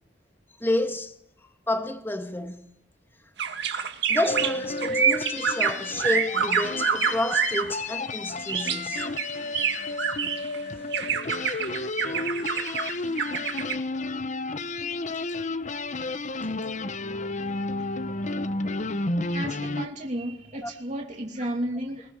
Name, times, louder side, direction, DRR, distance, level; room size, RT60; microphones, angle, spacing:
voice 1, 0.6-1.2 1.7-2.6 4.1-9.0 10.7-10.8 11.5-11.7 20.6-20.7, left 1 dB, 10° left, 1.9 m, -30 dB
sound 1, 3.4-7.7 8.5-10.6 10.9-13.7, right 7 dB, 65° right, 2.2 m, -27 dB
sound 2, 4.2-19.9, left 2 dB, 40° left, 1.0 m, -32 dB
voice 2, 19.3-22.1, right 1 dB, 40° right, 2.9 m, -32 dB
24.0 x 21.5 x 7.2 m
head